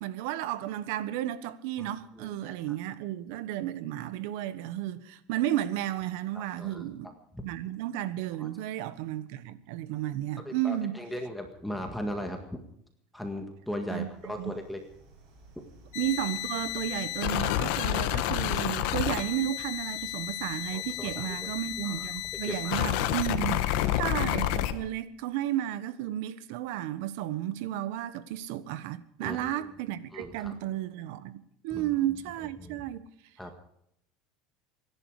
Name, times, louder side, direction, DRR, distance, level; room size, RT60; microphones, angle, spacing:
voice 1, 0.0-7.1 7.4-11.0 13.9-14.5 15.9-23.6 23.9-33.0, right 12 dB, 75° right, 1.3 m, -33 dB
voice 2, 2.2-2.5 6.3-6.8 8.4-8.5 10.4-12.6 13.1-14.8 20.7-21.5 21.8-22.0 22.4-22.9 23.4-24.0 29.2-29.5 30.1-30.5 31.7-31.9 32.6-32.8 33.4-33.5, left 1 dB, 5° left, 1.8 m, -38 dB
sound 1, 14.0-24.6, right 3 dB, 50° right, 7.3 m, -52 dB
sound 2, 15.9-24.7, left 13 dB, 70° left, 1.4 m, -30 dB
25.5 x 11.5 x 5.0 m
supercardioid pair, 140°, 0 cm